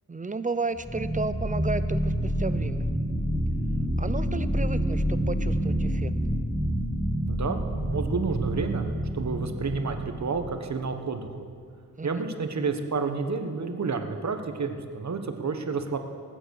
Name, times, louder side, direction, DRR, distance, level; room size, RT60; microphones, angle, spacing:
voice 1, 0.1-2.9 4.0-6.1 12.0-12.3, right 3 dB, 20° right, 12 dB, 0.6 m, -33 dB
sound 1, 0.7-10.6, equal, ahead, 1.5 m, -28 dB
voice 2, 7.3-11.4 12.0-16.0, right 4 dB, 50° right, 6 dB, 1.2 m, -30 dB
19.5 x 8.0 x 6.5 m, 2.2 s
wide cardioid pair, 85°, 36 cm